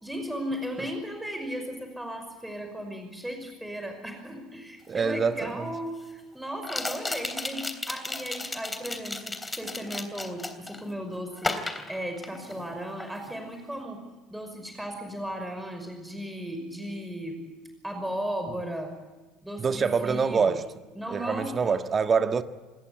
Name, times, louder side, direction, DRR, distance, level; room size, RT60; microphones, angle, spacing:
voice 1, 0.0-14.0 14.3-17.5 17.8-18.9 19.4-20.6 20.9-21.8, equal, 5° right, 5.6 m, -36 dB
sound 1, 4.9-5.0 6.6-10.8 11.4-12.7 13.0-13.3, left 2 dB, 15° left, 3.4 m, -34 dB
voice 2, 4.9-5.7 19.6-20.7 21.1-22.4, right 5 dB, 30° right, 1.5 m, -25 dB
27.0 x 20.5 x 8.5 m
figure-of-eight pair, 60°, 0 cm